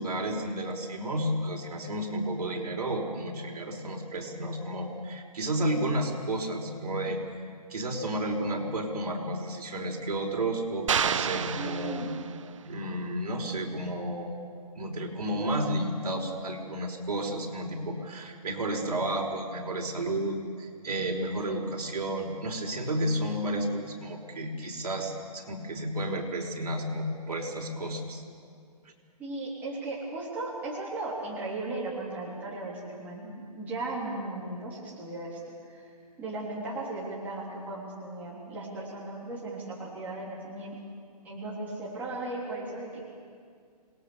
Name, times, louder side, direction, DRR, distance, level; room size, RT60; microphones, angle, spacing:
voice 1, 0.0-7.2 7.7-12.0 12.6-14.4 14.7-28.2, right 1 dB, 65° right, 1 dB, 5.2 m, -32 dB
sound 1, 10.9-12.6, right 7 dB, 50° right, 0.8 m, -29 dB
voice 2, 11.5-12.1 29.2-35.4 35.7-35.9 36.2-40.8 41.2-43.0, right 2 dB, 10° right, -6 dB, 3.3 m, -36 dB
27.5 x 20.5 x 7.0 m, 2.2 s
hypercardioid pair, 170°, 21 cm